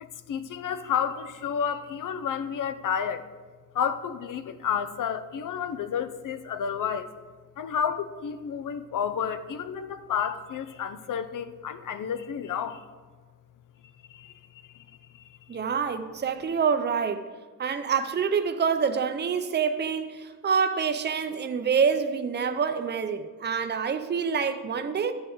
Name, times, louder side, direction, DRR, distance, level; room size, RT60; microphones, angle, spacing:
voice 1, 0.0-3.2 3.7-7.1 7.6-12.8 14.1-15.4, left 7 dB, 75° left, 12 dB, 0.6 m, -31 dB
voice 2, 15.5-17.3 17.6-25.1, right 6 dB, 35° right, 8 dB, 0.5 m, -26 dB
12.5 x 7.0 x 3.8 m, 1.4 s
wide cardioid pair, 175°, 32 cm